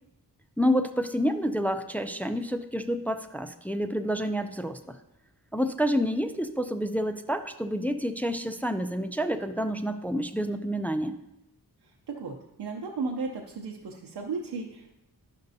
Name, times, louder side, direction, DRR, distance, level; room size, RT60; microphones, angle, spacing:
voice 1, 0.6-5.0 5.5-11.2, equal, 5° left, 8 dB, 0.3 m, -28 dB
voice 2, 11.8-14.9, right 4 dB, 75° right, 0 dB, 0.7 m, -35 dB
11.5 x 5.3 x 2.7 m, 0.90 s
wide cardioid pair, 75°, 39 cm